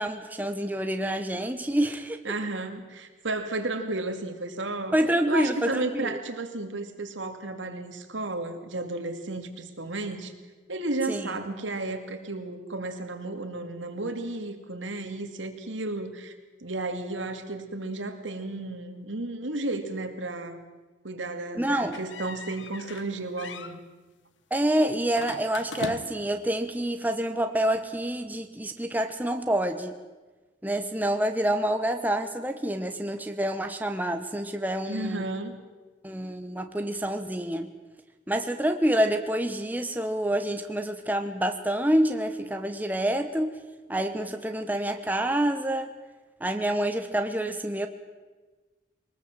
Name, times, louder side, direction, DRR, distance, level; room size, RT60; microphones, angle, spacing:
voice 1, 0.0-2.2 4.9-6.2 11.1-11.3 21.6-21.9 24.5-30.0 30.6-35.2 36.0-37.7 38.3-43.5 43.9-45.9 46.4-47.9, right 1 dB, 10° right, 6 dB, 1.0 m, -27 dB
voice 2, 2.2-5.0 5.3-10.3 10.7-16.3 16.6-20.6 21.0-23.8 34.9-35.6, right 2 dB, 85° right, 6 dB, 2.6 m, -33 dB
sound 1, 21.9-23.1 23.4-23.8 25.1-26.3, left 3 dB, 80° left, 1.3 m, -39 dB
23.0 x 20.0 x 7.6 m, 1.3 s
head